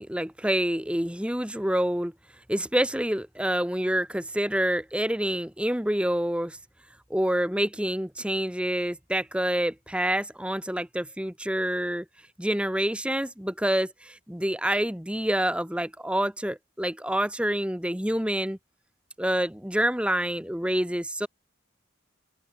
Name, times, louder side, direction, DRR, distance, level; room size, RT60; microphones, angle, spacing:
voice 1, 0.0-2.1 2.5-6.6 7.1-12.0 12.4-18.6 19.2-21.3, right 1 dB, 5° right, 1.5 m, -27 dB
open air
head